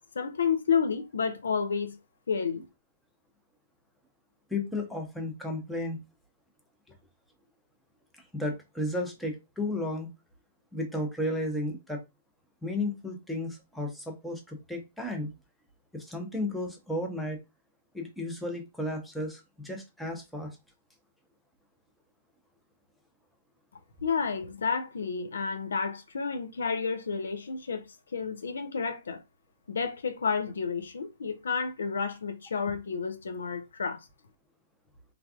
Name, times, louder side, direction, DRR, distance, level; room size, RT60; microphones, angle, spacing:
voice 1, 0.0-2.0 2.3-2.6 24.0-27.8 28.1-29.2 29.7-34.0, left 5 dB, 70° left, 0.4 m, -30 dB
voice 2, 4.5-6.0 6.9-7.0 8.3-10.1 10.7-12.0 12.6-15.3 15.9-17.4 17.9-20.5, left 1 dB, ahead, 0.7 m, -33 dB
3.2 x 2.3 x 2.3 m
figure-of-eight pair, 120°, 0 cm